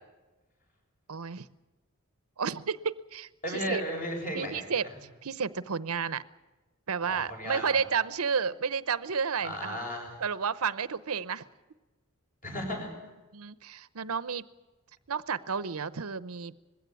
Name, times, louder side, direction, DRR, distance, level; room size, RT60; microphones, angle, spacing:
voice 1, 1.1-1.5 2.4-3.8 4.3-4.9 5.2-6.2 6.9-9.8 10.2-11.4 13.3-14.4 15.1-16.5, right 6 dB, 85° right, 16 dB, 0.8 m, -31 dB
voice 2, 3.4-4.7 7.0-7.8 9.4-10.2 12.4-12.9, equal, 40° left, 1 dB, 7.5 m, -35 dB
21.0 x 16.5 x 9.7 m, 1.1 s
head